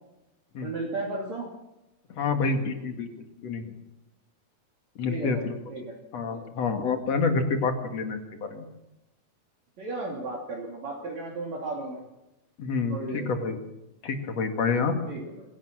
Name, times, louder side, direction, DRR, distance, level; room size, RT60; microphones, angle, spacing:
voice 1, 0.6-1.5 5.1-5.9 6.2-6.4 9.8-12.0 12.9-13.4 15.1-15.4, right 2 dB, 50° right, -3 dB, 4.1 m, -35 dB
voice 2, 2.1-3.6 5.0-5.6 6.1-8.7 12.6-13.6 14.0-15.0, left 4 dB, 50° left, 6 dB, 2.8 m, -28 dB
25.5 x 17.0 x 6.2 m, 0.93 s
omnidirectional pair, 4.0 m